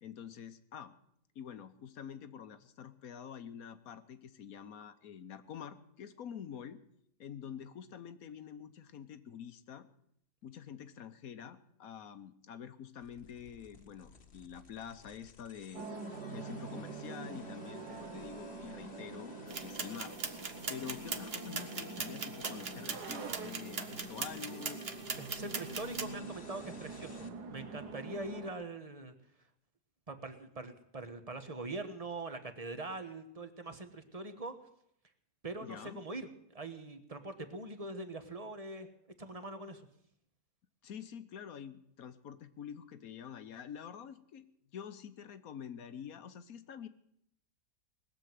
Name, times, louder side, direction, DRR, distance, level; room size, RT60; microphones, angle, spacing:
voice 1, 0.0-0.9 1.3-6.8 7.2-9.9 10.4-15.9 16.3-20.2 20.7-24.8 35.6-36.0 40.8-44.4 44.7-46.9, left 8 dB, 65° left, 12 dB, 1.2 m, -47 dB
sound 1, 13.0-27.3, left 4 dB, 40° left, 1.4 m, -55 dB
sound 2, 15.7-28.5, right 3 dB, 75° right, 1.8 m, -45 dB
sound 3, 19.5-26.0, right 5 dB, 40° right, 1.2 m, -41 dB
voice 2, 25.2-29.1 30.1-34.5 35.4-38.9 39.2-39.9, right 2 dB, 25° right, 9 dB, 1.1 m, -43 dB
20.0 x 7.5 x 9.3 m, 0.72 s
omnidirectional pair, 1.8 m